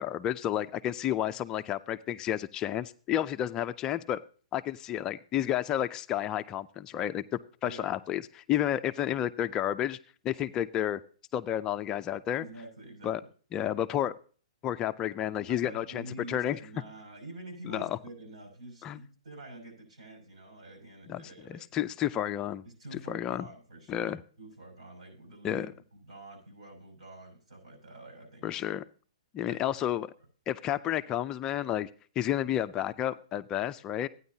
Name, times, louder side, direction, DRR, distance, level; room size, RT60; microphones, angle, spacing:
voice 1, 0.0-4.2 4.5-10.0 10.2-11.0 11.3-12.4 13.0-13.2 13.5-14.2 14.6-16.6 17.6-18.0 18.8-19.0 21.1-22.6 22.9-23.4 23.9-24.2 25.4-25.7 28.4-28.8 29.3-30.1 30.5-31.9 32.2-34.1, left 11 dB, 20° left, 11 dB, 0.4 m, -31 dB
voice 2, 12.4-13.2 15.5-21.7 22.6-25.8 26.1-28.6 29.5-30.0, right 2 dB, 85° right, 2 dB, 6.4 m, -47 dB
14.5 x 9.6 x 2.7 m, 0.40 s
hypercardioid pair, 155°, 3 cm